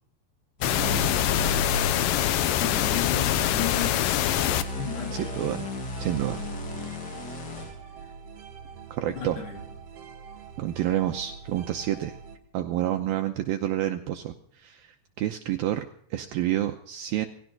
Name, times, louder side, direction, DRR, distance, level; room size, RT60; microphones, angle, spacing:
sound 1, 0.6-4.6, left 12 dB, 90° left, 1.9 m, -24 dB
sound 2, 0.6-7.8, left 2 dB, 50° left, 1.2 m, -34 dB
voice 1, 2.6-4.3 4.7-5.4 9.4-9.6, left 6 dB, 70° left, 2 dB, 5.1 m, -34 dB
sound 3, 4.3-12.4, right 6 dB, 50° right, 2.1 m, -44 dB
voice 2, 5.1-5.7 6.0-6.4 8.9-9.4 10.6-12.2 12.5-17.3, right 12 dB, 80° right, 6 dB, 2.2 m, -29 dB
19.0 x 16.5 x 3.9 m, 0.65 s
omnidirectional pair, 5.0 m